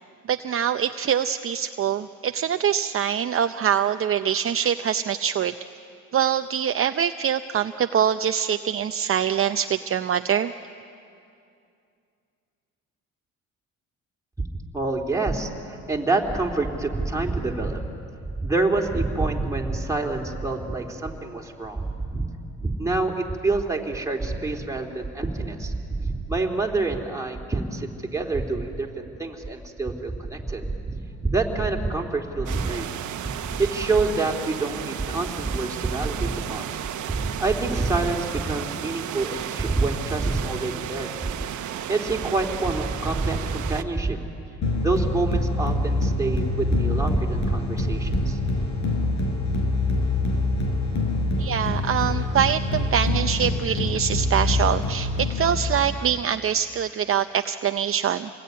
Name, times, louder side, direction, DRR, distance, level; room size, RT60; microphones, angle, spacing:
voice 1, 0.3-5.5 6.1-10.5 51.4-58.3, right 9 dB, 45° right, 8 dB, 0.7 m, -24 dB
voice 2, 14.7-17.8 18.4-22.3 22.6-32.9 33.4-36.7 37.1-41.1 41.9-44.2 44.8-48.4, right 3 dB, 10° right, 1 dB, 3.3 m, -26 dB
sound 1, 32.5-43.8, right 10 dB, 75° right, 1.1 m, -34 dB
sound 2, 44.6-56.1, left 2 dB, 70° left, 5.8 m, -25 dB
27.5 x 20.5 x 9.5 m, 2.5 s
cardioid pair, 90°, 30 cm